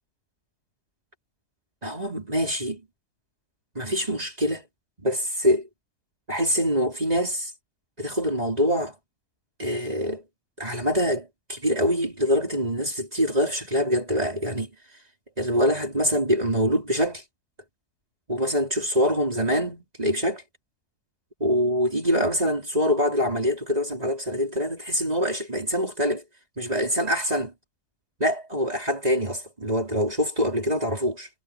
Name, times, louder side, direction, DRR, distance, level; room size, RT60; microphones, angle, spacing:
voice 1, 1.8-2.8 3.7-4.6 5.0-5.7 6.3-7.5 8.0-8.9 9.6-10.2 10.6-14.7 15.4-17.2 18.3-20.4 21.4-26.2 26.6-27.5 28.2-31.3, equal, 25° right, 4.7 m, -24 dB
omnidirectional pair, 1.6 m